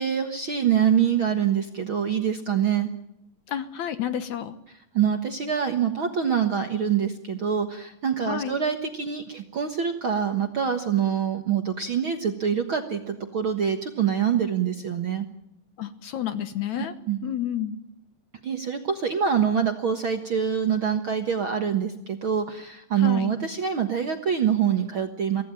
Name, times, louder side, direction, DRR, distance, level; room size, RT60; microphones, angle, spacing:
voice 1, 0.0-2.9 4.9-15.3 17.1-17.2 18.4-25.4, right 8 dB, 50° right, 6 dB, 1.6 m, -25 dB
voice 2, 3.5-4.6 8.2-8.6 15.8-16.9 17.2-17.7 23.0-23.3, left 10 dB, 65° left, 11 dB, 2.2 m, -30 dB
24.5 x 17.0 x 9.0 m, 0.83 s
omnidirectional pair, 4.1 m